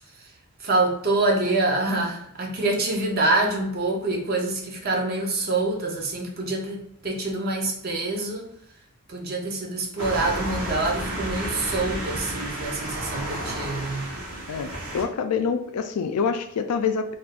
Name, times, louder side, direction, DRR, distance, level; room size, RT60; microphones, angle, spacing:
voice 1, 0.6-8.5 9.1-14.1, right 2 dB, 45° right, 0 dB, 0.6 m, -26 dB
sound 1, 10.0-15.0, right 1 dB, 65° right, 1.1 m, -31 dB
voice 2, 14.5-17.1, left 6 dB, 85° left, 8 dB, 0.4 m, -26 dB
2.6 x 2.4 x 3.4 m, 0.74 s
head